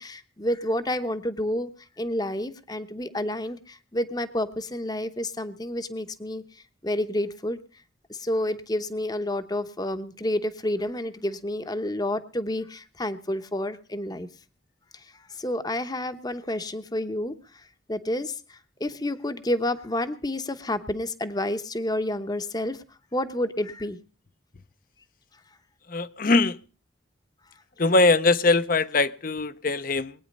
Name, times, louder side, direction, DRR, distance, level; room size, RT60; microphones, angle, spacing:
voice 1, 0.0-1.7 2.0-7.6 8.1-14.3 14.9-22.8 23.1-24.0, left 1 dB, 20° left, 0.9 m, -30 dB
voice 2, 25.9-26.6 27.8-30.1, left 3 dB, 45° left, 0.7 m, -21 dB
21.5 x 9.4 x 5.3 m
head